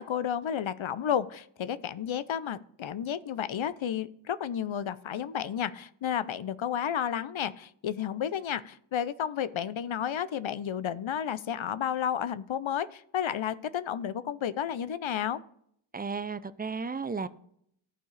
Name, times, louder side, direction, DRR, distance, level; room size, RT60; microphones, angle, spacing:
voice 1, 0.0-15.4, left 9 dB, 75° left, 15 dB, 0.5 m, -32 dB
voice 2, 15.9-17.3, right 4 dB, 20° right, 15 dB, 0.4 m, -34 dB
14.0 x 4.6 x 3.2 m, 0.69 s
wide cardioid pair, 55°, 48 cm